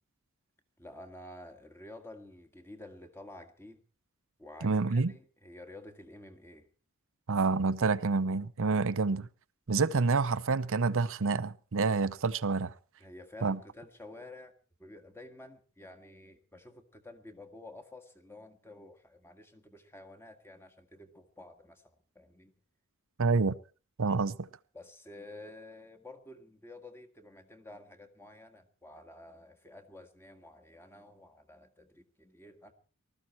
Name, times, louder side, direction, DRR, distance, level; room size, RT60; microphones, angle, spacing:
voice 1, 0.8-3.8 4.4-6.7 13.0-14.5 14.8-22.5 24.7-32.7, left 1 dB, 10° left, 1.7 m, -51 dB
voice 2, 4.6-5.1 7.3-9.3 9.7-12.7 13.4-13.6 23.2-23.5 24.0-24.5, right 4 dB, 65° right, 0.7 m, -28 dB
19.5 x 13.5 x 4.4 m
head